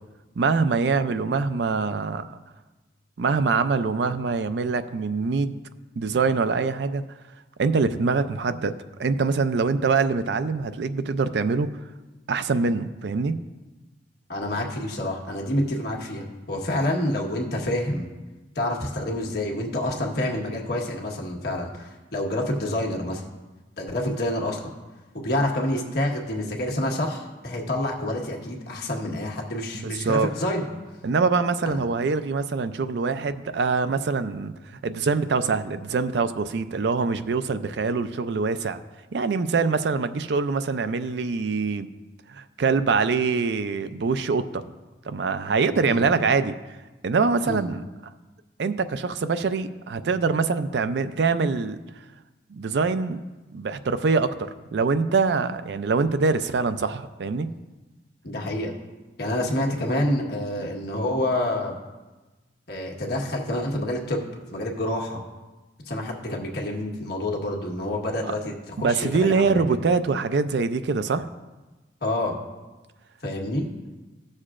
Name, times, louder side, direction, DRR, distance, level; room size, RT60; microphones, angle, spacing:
voice 1, 0.4-2.3 3.2-5.6 6.0-7.0 7.6-11.7 12.3-13.4 29.7-30.3 31.0-34.5 34.8-38.8 39.1-41.9 42.3-44.6 45.0-46.5 47.0-47.8 48.6-51.8 52.5-53.2 53.5-57.5 68.2-68.3 68.8-71.3, right 4 dB, 70° right, 12 dB, 0.4 m, -24 dB
voice 2, 14.3-18.1 18.5-23.2 23.8-24.6 25.1-30.7 31.6-31.8 45.9-46.1 47.4-47.7 58.2-58.7 59.2-61.7 62.7-64.2 64.5-65.2 65.9-69.6 72.0-72.3 73.2-73.7, left 1 dB, 60° left, -1 dB, 1.4 m, -28 dB
15.5 x 6.4 x 2.5 m, 1.2 s
head